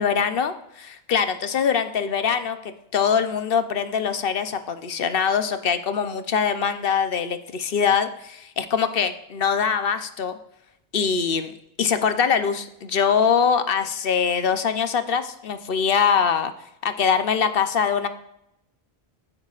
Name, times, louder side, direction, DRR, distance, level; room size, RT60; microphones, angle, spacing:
voice 1, 0.0-10.4 10.9-16.5 16.8-18.1, left 6 dB, 60° left, 10 dB, 0.9 m, -23 dB
15.5 x 8.8 x 2.4 m, 0.81 s
omnidirectional pair, 1.1 m